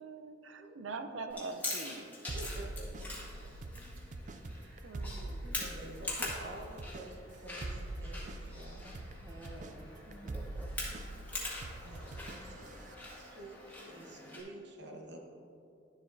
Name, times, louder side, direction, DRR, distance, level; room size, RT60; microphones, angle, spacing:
voice 1, 0.0-2.1 4.8-5.8, right 3 dB, 85° right, 8 dB, 0.6 m, -44 dB
Chewing mastication, 1.3-14.4, left 2 dB, 10° left, 1.6 m, -44 dB
sound 1, 2.3-12.9, right 2 dB, 40° right, 0.4 m, -44 dB
voice 2, 2.3-3.5 4.5-4.9 5.4-8.8 11.8-15.2, right 1 dB, 65° right, 1 dB, 1.1 m, -50 dB
voice 3, 8.8-10.7 12.3-12.8, right 1 dB, 20° right, 1 dB, 0.9 m, -52 dB
12.0 x 7.4 x 2.6 m, 2.6 s
head